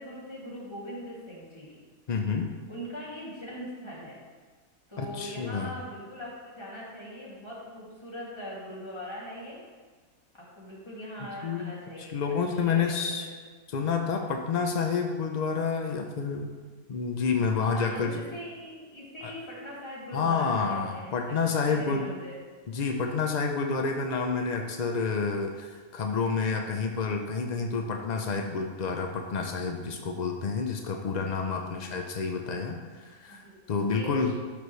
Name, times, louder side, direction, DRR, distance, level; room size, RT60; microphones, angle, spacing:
voice 1, 0.0-1.8 2.7-4.2 4.9-9.6 10.3-12.2 12.5-13.2 17.7-21.4 21.6-22.4 28.2-28.5 31.5-31.8 33.3-33.6 33.9-34.3, equal, 15° left, -7 dB, 2.5 m, -41 dB
voice 2, 2.1-2.5 5.0-5.8 11.4-11.7 12.0-13.3 13.7-16.5 16.9-18.2 19.2-19.3 20.1-22.1 22.7-32.8 33.0-33.4 33.7-34.3, left 5 dB, 75° left, 3 dB, 0.4 m, -29 dB
12.5 x 5.3 x 3.2 m, 1.4 s
omnidirectional pair, 1.6 m